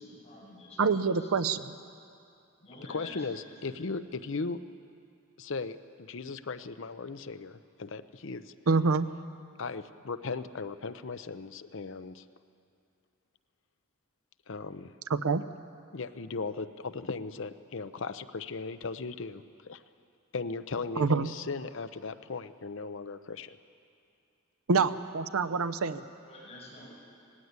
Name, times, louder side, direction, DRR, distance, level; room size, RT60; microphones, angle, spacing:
voice 1, 0.0-1.8 2.6-4.0 26.2-26.9, left 1 dB, 30° left, -6 dB, 6.8 m, -50 dB
voice 2, 0.8-1.6 8.7-9.1 15.1-15.4 21.0-21.3 24.7-26.0, right 4 dB, 85° right, 12 dB, 0.7 m, -26 dB
voice 3, 2.9-4.6 5.4-8.5 9.6-12.2 14.5-14.9 15.9-19.8 20.3-23.6, left 4 dB, 60° left, 12 dB, 0.7 m, -37 dB
18.0 x 16.0 x 9.5 m, 2.5 s
head